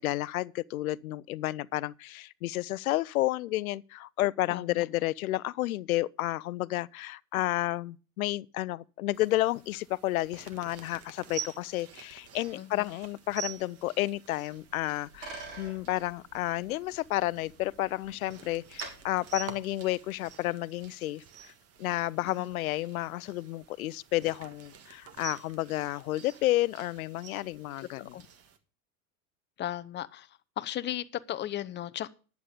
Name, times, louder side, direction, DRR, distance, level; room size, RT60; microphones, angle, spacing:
voice 1, 0.0-21.5 21.8-28.1, left 16 dB, 80° left, 0.6 m, -31 dB
voice 2, 4.5-4.8 12.5-12.9 22.2-22.5 28.1-28.2 29.6-30.3 30.6-32.1, left 12 dB, 25° left, 0.7 m, -36 dB
sound 1, 9.1-28.6, right 8 dB, 35° right, 1.6 m, -48 dB
Bicycle, 14.6-20.3, right 4 dB, 70° right, 6.5 m, -48 dB
11.0 x 8.3 x 5.1 m
hypercardioid pair, 105°, 42 cm